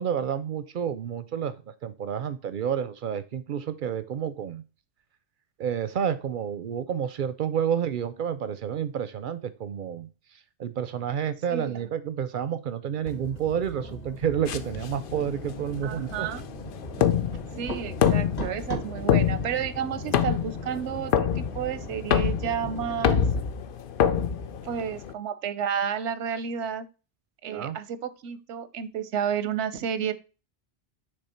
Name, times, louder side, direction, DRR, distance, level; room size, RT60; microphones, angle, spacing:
voice 1, 0.0-1.5 1.8-4.6 5.6-10.1 10.6-16.3 17.0-17.1 23.0-23.3 27.5-27.8, right 8 dB, 60° right, 13 dB, 0.6 m, -30 dB
sound 1, 13.0-23.5, equal, 35° left, 1.3 m, -39 dB
sound 2, 14.5-25.1, left 8 dB, 60° left, 0.7 m, -27 dB
voice 2, 15.8-16.5 17.6-23.2 24.6-26.9 27.4-30.1, right 8 dB, 90° right, 14 dB, 0.9 m, -31 dB
6.9 x 3.3 x 4.2 m, 0.33 s
omnidirectional pair, 1.2 m